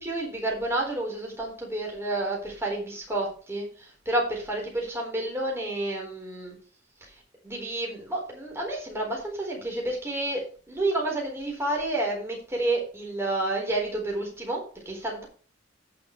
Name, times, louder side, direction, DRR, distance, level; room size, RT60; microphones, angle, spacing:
voice 1, 0.0-6.6 7.0-7.1 7.4-10.4 10.7-15.2, right 2 dB, 15° right, -1 dB, 4.0 m, -30 dB
17.5 x 6.1 x 3.2 m, 0.41 s
head